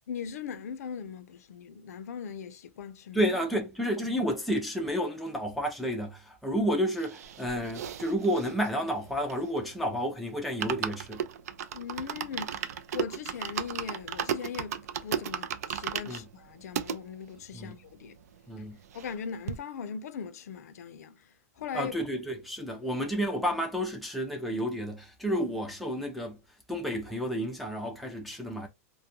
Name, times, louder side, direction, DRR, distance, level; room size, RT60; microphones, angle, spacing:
voice 1, 0.1-3.2 11.7-18.2 18.9-22.0, left 7 dB, 90° left, 0.5 m, -40 dB
voice 2, 3.1-11.2 16.1-16.3 17.5-17.7 18.5-18.8 21.7-26.4 26.7-28.7, equal, ahead, 0.3 m, -31 dB
sound 1, 7.0-9.8 10.1-10.2 10.4-17.0 17.6-17.7 17.8-17.9 18.2-19.2 19.5-19.6, right 9 dB, 80° right, 0.4 m, -35 dB
2.3 x 2.1 x 2.8 m
supercardioid pair, 170°, 8 cm